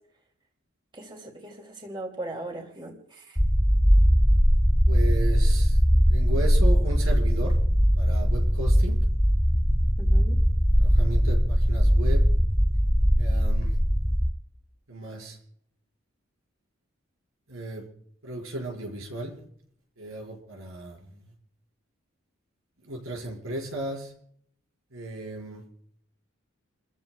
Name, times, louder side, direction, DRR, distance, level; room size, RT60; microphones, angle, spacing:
voice 1, 0.9-3.4 10.0-10.4, right 1 dB, 25° right, 2 dB, 2.7 m, -39 dB
sound 1, 3.4-14.3, equal, 5° left, 0.8 m, -20 dB
voice 2, 4.8-5.8 6.1-7.6 7.9-9.0 10.7-12.2 13.2-13.8 14.9-15.4 17.5-17.8 18.2-19.4 20.0-21.3 22.8-24.1 24.9-25.6, right 1 dB, 85° right, 0 dB, 5.6 m, -35 dB
29.0 x 14.5 x 2.4 m, 0.67 s
head